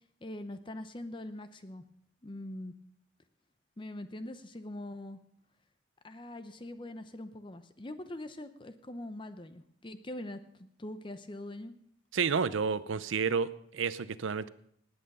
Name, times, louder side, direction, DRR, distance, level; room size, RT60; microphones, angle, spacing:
voice 1, 0.2-1.8 2.2-2.7 3.8-5.2 6.0-11.7, left 1 dB, 25° left, 10 dB, 0.7 m, -43 dB
voice 2, 12.1-14.5, right 5 dB, 90° right, 16 dB, 0.6 m, -30 dB
18.5 x 8.8 x 5.5 m, 0.69 s
head